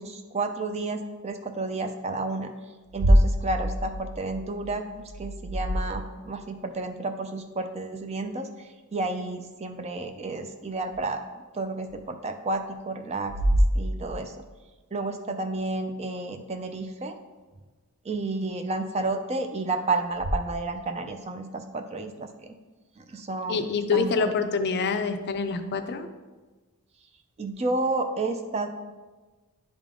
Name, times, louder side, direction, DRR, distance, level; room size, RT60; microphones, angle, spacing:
voice 1, 0.0-2.5 2.9-4.9 5.2-13.3 13.7-14.3 14.9-17.2 18.0-22.5 23.0-24.3 27.4-28.7, right 2 dB, 30° right, 7 dB, 0.4 m, -31 dB
sound 1, 2.9-6.4 10.9-11.0 11.9-12.0 13.2-14.5 20.1-20.3, equal, 90° right, 0.8 m, -25 dB
voice 2, 23.5-26.1, left 5 dB, 50° left, 9 dB, 0.4 m, -26 dB
10.0 x 3.6 x 3.7 m, 1.3 s
head